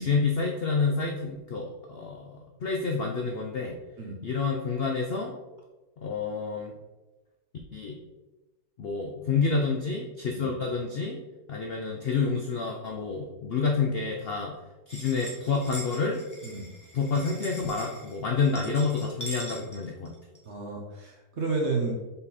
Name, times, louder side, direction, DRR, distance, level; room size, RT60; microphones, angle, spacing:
voice 1, 0.0-3.8 4.2-5.3 6.0-6.7 7.7-8.0 8.8-11.2 11.5-14.6 14.9-16.2 16.9-20.1, left 4 dB, 70° left, 1 dB, 0.5 m, -28 dB
sound 1, 14.9-20.4, right 1 dB, 10° left, 1.1 m, -42 dB
voice 2, 20.5-21.9, right 3 dB, 50° right, 0 dB, 1.0 m, -31 dB
5.5 x 4.1 x 4.1 m, 1.1 s
omnidirectional pair, 1.8 m